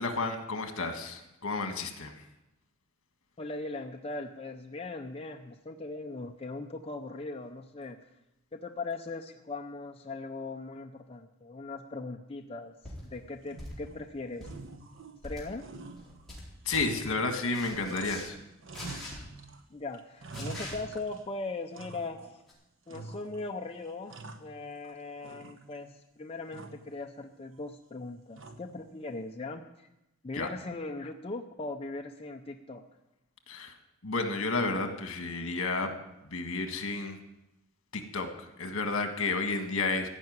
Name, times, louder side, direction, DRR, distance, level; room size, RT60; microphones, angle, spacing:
voice 1, 0.0-2.2 16.6-18.3 30.3-30.5 33.5-33.8 34.0-35.9 36.3-37.2 37.9-40.1, left 3 dB, 70° left, 6 dB, 1.6 m, -31 dB
voice 2, 3.4-8.0 8.5-12.7 13.0-14.5 15.2-15.6 19.7-22.4 22.9-29.9 30.2-32.8, left 3 dB, 30° left, 3 dB, 0.6 m, -39 dB
sound 1, 12.8-13.0 13.6-13.9 14.3-14.6 15.2-15.5 15.9-16.4 16.7-16.9 17.5-18.3 18.7-19.2 20.3-20.8 22.5-22.6, left 1 dB, ahead, 4.2 m, -42 dB
sound 2, 13.4-14.0 14.4-15.3 15.6-18.3 18.6-19.6 19.9-21.3 21.7-22.4 22.9-23.5 23.9-24.9 25.2-26.0 26.5-26.9 28.4-28.9, right 3 dB, 65° right, 1.0 m, -46 dB
15.0 x 5.8 x 9.4 m, 0.92 s
head